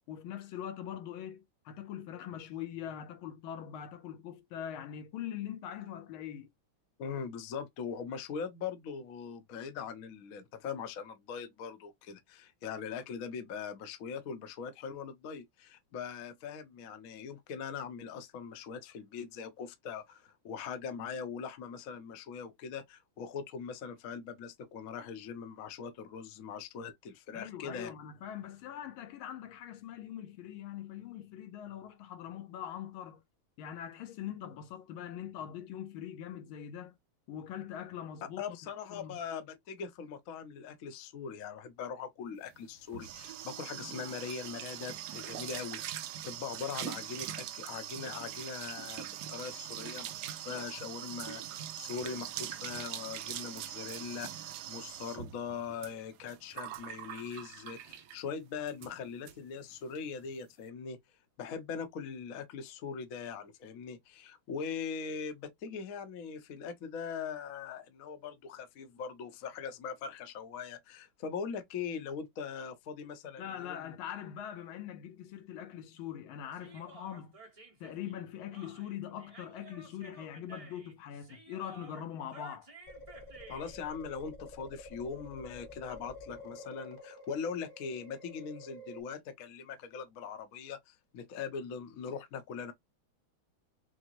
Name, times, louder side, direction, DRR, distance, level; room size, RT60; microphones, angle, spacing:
voice 1, 0.1-6.5 27.3-33.2 33.6-37.0 37.3-38.6 38.9-39.2 73.4-77.4 77.8-82.7, left 10 dB, 80° left, 1.5 m, -42 dB
voice 2, 7.0-27.9 38.4-61.0 61.4-74.0 83.5-92.7, left 6 dB, 60° left, 0.9 m, -41 dB
sound 1, 42.5-58.3 58.7-58.9 59.3-59.4 59.6-60.0, right 11 dB, 80° right, 0.9 m, -42 dB
Human voice, 76.5-83.9, right 3 dB, 35° right, 0.5 m, -54 dB
sound 2, 82.9-89.0, left 2 dB, 30° left, 0.7 m, -49 dB
6.2 x 2.1 x 2.9 m
omnidirectional pair, 2.3 m